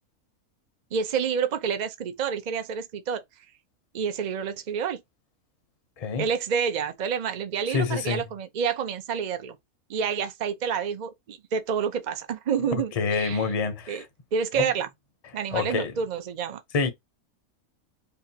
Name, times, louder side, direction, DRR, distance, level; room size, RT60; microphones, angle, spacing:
voice 1, 0.9-3.2 3.9-5.0 6.2-9.6 9.9-13.4 13.9-14.0 14.3-14.9 15.3-16.6, right 7 dB, 45° right, 0.6 m, -28 dB
voice 2, 6.0-6.3 7.7-8.2 13.0-14.1 14.6-14.7 15.5-15.9 16.7-16.9, left 5 dB, 35° left, 0.7 m, -26 dB
5.2 x 2.5 x 2.8 m
omnidirectional pair, 1.5 m